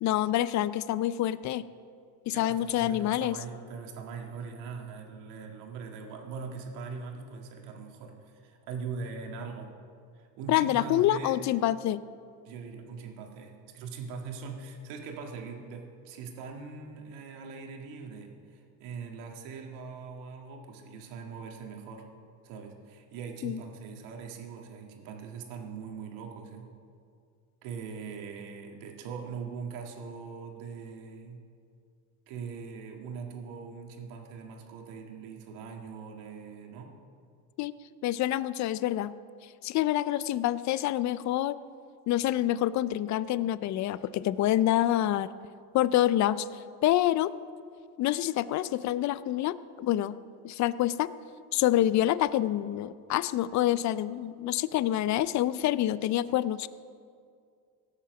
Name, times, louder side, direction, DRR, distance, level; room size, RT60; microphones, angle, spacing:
voice 1, 0.0-1.6 2.3-3.4 10.5-12.0 23.4-23.6 37.6-37.7 38.0-39.1 39.6-41.6 42.1-45.3 45.7-46.5 46.8-47.3 48.0-50.2 50.4-51.1 51.5-56.7, left 13 dB, 40° left, 17 dB, 0.4 m, -27 dB
voice 2, 2.3-9.7 10.1-11.4 12.4-22.0 22.4-26.7 27.6-31.4 32.3-36.9, right 5 dB, 75° right, 2 dB, 2.0 m, -41 dB
17.5 x 7.4 x 5.9 m, 2.3 s
supercardioid pair, 110°, 47 cm